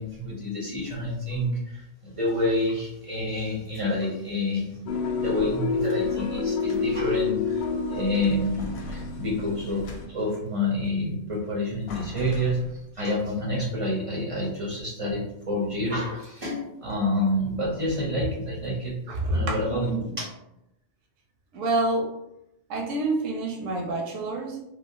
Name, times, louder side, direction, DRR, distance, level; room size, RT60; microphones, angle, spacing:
voice 1, 0.0-4.7 5.2-7.6 7.9-12.6 12.9-20.3, left 1 dB, 40° right, -4 dB, 0.4 m, -28 dB
sound 1, 4.7-6.1 6.5-7.1 7.5-8.0 8.3-10.5 11.4-11.5 11.9-13.1, right 1 dB, 60° left, 0.8 m, -42 dB
sound 2, 4.9-10.0, left 5 dB, 85° left, 0.4 m, -29 dB
voice 2, 19.1-20.2 21.5-22.1 22.7-24.6, right 2 dB, 75° right, 0 dB, 1.0 m, -27 dB
3.3 x 2.1 x 2.5 m, 0.84 s
omnidirectional pair, 1.3 m